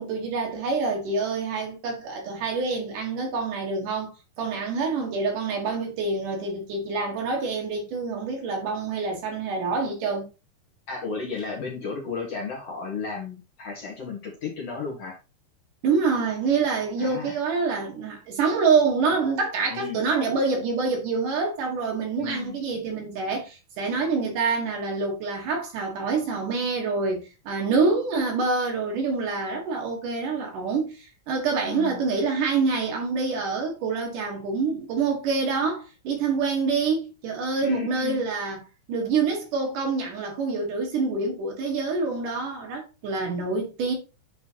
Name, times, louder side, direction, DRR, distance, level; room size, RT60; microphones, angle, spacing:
voice 1, 0.0-4.1 4.4-10.3 15.8-38.6 38.9-43.9, right 4 dB, 60° right, 2.6 m, -26 dB
voice 2, 10.9-15.2 17.0-17.4 19.7-20.0 22.2-22.6 31.7-32.1 37.6-38.2, left 5 dB, 50° left, 2.1 m, -34 dB
9.3 x 4.3 x 2.9 m
omnidirectional pair, 4.8 m